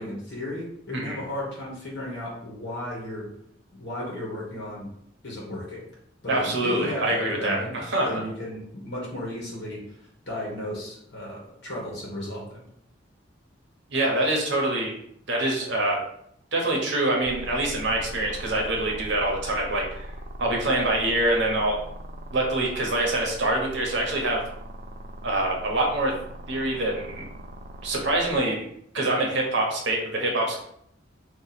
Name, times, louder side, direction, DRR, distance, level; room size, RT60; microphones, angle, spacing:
voice 1, 0.0-3.3 3.7-4.9 5.2-5.9 6.2-7.7 8.0-10.0 10.3-12.6, left 1 dB, 60° left, -3 dB, 1.1 m, -34 dB
voice 2, 0.9-1.2 6.3-8.1 13.9-14.9 15.3-16.0 16.5-20.1 20.4-21.8 22.3-24.4 25.2-26.1 26.5-27.3 27.8-28.6 28.9-30.6, right 1 dB, 65° right, -1 dB, 0.9 m, -25 dB
sound 1, 17.3-28.4, right 1 dB, 40° right, 0.4 m, -40 dB
2.9 x 2.4 x 4.0 m, 0.71 s
head